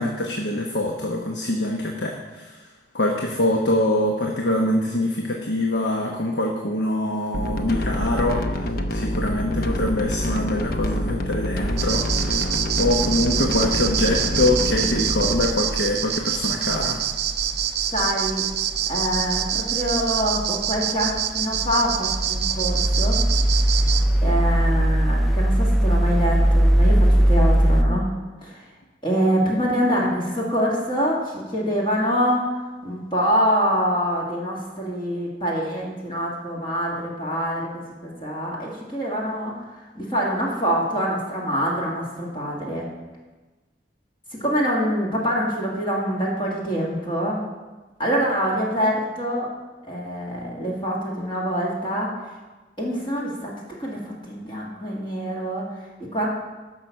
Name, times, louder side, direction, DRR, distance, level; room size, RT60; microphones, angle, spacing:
voice 1, 0.0-2.6 2.9-12.4 12.7-17.0, left 1 dB, 70° left, 1 dB, 1.1 m, -24 dB
sound 1, 7.3-15.5, left 1 dB, 55° left, 0.8 m, -26 dB
sound 2, 11.6-13.1 21.7-27.8, right 1 dB, ahead, 0.4 m, -20 dB
sound 3, 11.8-24.1, right 9 dB, 60° right, 0.7 m, -26 dB
voice 2, 17.9-18.4 18.9-23.2 24.2-28.1 28.4-28.6 29.0-32.5 32.8-39.5 39.9-42.9 44.4-47.4 48.0-49.5 49.8-52.1 52.8-53.5 53.8-54.0 54.3-55.7 56.1-56.3, equal, 25° left, -4 dB, 2.0 m, -25 dB
15.5 x 6.0 x 5.8 m, 1.2 s
head